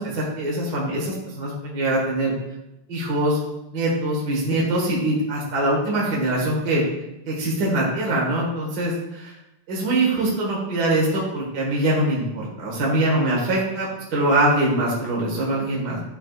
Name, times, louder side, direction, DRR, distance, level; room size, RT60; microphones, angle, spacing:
voice 1, 0.0-2.3 2.9-3.4 3.7-6.8 7.3-9.3 9.7-16.0, right 1 dB, 40° right, -4 dB, 1.6 m, -23 dB
12.0 x 4.6 x 2.4 m, 0.90 s
omnidirectional pair, 3.6 m